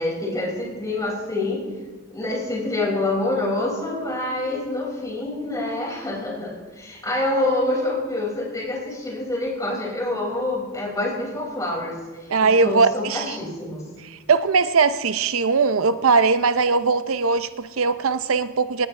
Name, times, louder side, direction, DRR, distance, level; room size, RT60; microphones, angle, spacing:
voice 1, 0.0-1.6 2.1-11.9 12.4-13.8, left 2 dB, 15° left, -3 dB, 5.6 m, -26 dB
voice 2, 12.3-13.4 14.1-18.9, right 4 dB, 90° right, 12 dB, 0.6 m, -20 dB
18.5 x 18.0 x 3.3 m, 1.3 s
head